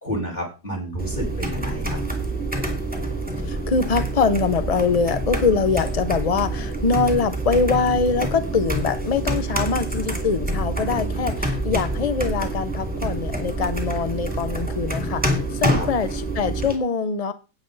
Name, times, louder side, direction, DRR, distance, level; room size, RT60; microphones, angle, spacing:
voice 1, 0.0-2.0 10.5-11.3 15.7-15.9, equal, 25° left, 1 dB, 4.9 m, -31 dB
sound 1, 1.0-16.8, right 1 dB, 5° right, 2.3 m, -27 dB
voice 2, 3.5-17.3, left 5 dB, 70° left, 11 dB, 0.3 m, -23 dB
11.5 x 9.2 x 4.0 m, 0.31 s
omnidirectional pair, 1.8 m